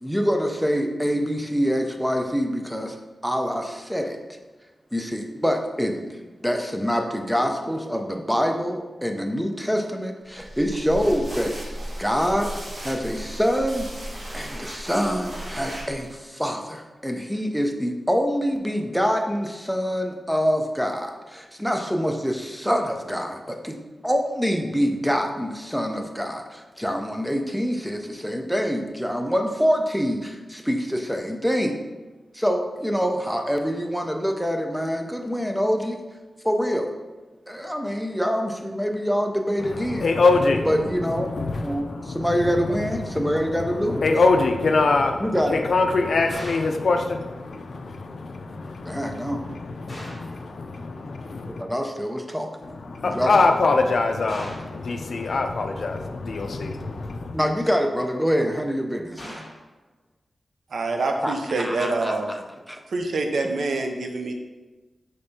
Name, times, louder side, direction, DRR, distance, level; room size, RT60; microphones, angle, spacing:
voice 1, 0.0-3.0 3.2-4.4 4.9-11.6 12.0-13.9 14.3-31.8 32.3-36.0 36.4-36.9 37.5-40.1 40.7-41.3 41.6-44.0 45.2-45.6 48.9-49.5 51.6-52.5 53.0-53.3 57.3-59.4 61.2-62.4 62.7-62.8, equal, ahead, 4 dB, 0.4 m, -25 dB
sound 1, 10.3-16.2, equal, 35° right, 1.2 m, -36 dB
voice 2, 39.6-51.6 52.6-57.4, left 3 dB, 65° left, 5 dB, 0.4 m, -24 dB
sound 2, 46.3-46.8 49.9-50.4 54.3-54.8 59.2-59.6, equal, 25° left, 1.3 m, -39 dB
voice 3, 60.7-62.3 62.9-64.3, right 3 dB, 85° right, 4 dB, 0.5 m, -26 dB
5.1 x 3.4 x 2.7 m, 1.2 s
wide cardioid pair, 135°, 0 cm